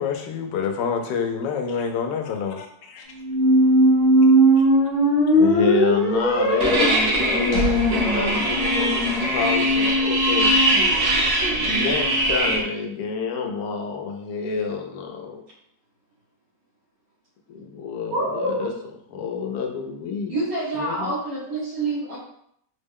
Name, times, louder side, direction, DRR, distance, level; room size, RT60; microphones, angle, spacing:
voice 1, 0.0-2.6, left 6 dB, 90° left, 4 dB, 1.2 m, -26 dB
voice 2, 2.6-3.1 5.3-10.5 11.5-15.4 17.5-18.7 19.1-20.4 20.7-21.1, left 5 dB, 70° left, 2 dB, 1.0 m, -28 dB
sound 1, 3.2-9.1, right 1 dB, 40° left, 0.9 m, -19 dB
sound 2, 6.6-12.6, equal, 60° right, 1.2 m, -21 dB
voice 3, 18.1-18.7 20.3-22.2, right 2 dB, 80° right, -8 dB, 1.5 m, -26 dB
3.5 x 2.1 x 3.5 m, 0.71 s
omnidirectional pair, 1.8 m